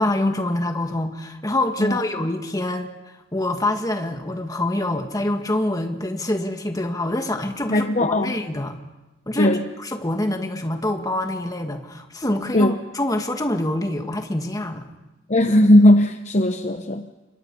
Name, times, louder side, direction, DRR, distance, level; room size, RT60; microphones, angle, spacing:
voice 1, 0.0-2.9 3.3-8.8 9.3-14.9, left 1 dB, 20° left, 5 dB, 1.9 m, -25 dB
voice 2, 7.7-8.3 9.4-9.6 12.5-12.7 15.3-17.0, left 1 dB, 35° left, 7 dB, 0.9 m, -17 dB
28.5 x 24.0 x 5.5 m, 1.1 s
head